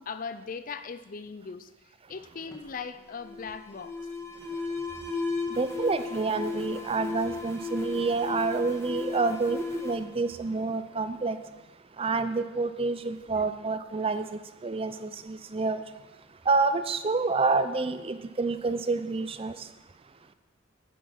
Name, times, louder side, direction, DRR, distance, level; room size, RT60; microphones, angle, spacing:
voice 1, 0.0-1.7 2.1-4.1 5.4-5.6 13.3-13.5, left 5 dB, 40° left, 12 dB, 0.5 m, -39 dB
Alarm, 2.5-11.1, left 4 dB, 15° left, 1.2 m, -36 dB
voice 2, 5.5-11.4 12.0-15.8 16.5-19.7, right 3 dB, 25° right, 11 dB, 0.4 m, -28 dB
10.0 x 8.4 x 5.6 m, 1.1 s
head